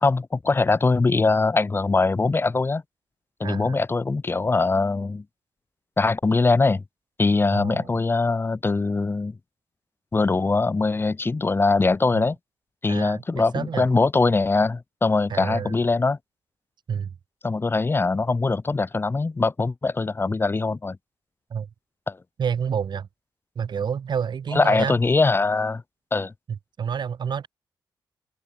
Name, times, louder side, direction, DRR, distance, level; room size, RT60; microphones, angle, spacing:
voice 1, 0.0-2.8 3.4-5.2 6.0-6.8 7.2-9.3 10.1-12.4 12.8-16.2 17.4-21.0 22.1-22.2 24.5-25.8 26.1-26.3, left 3 dB, 25° left, 0.6 m, -22 dB
voice 2, 3.4-3.8 7.5-7.9 12.1-12.3 12.9-13.9 15.3-15.7 16.9-17.1 21.5-21.7 22.4-23.1 23.6-25.0 26.8-27.5, right 7 dB, 60° right, 1.0 m, -29 dB
cardioid pair, 55°, 8 cm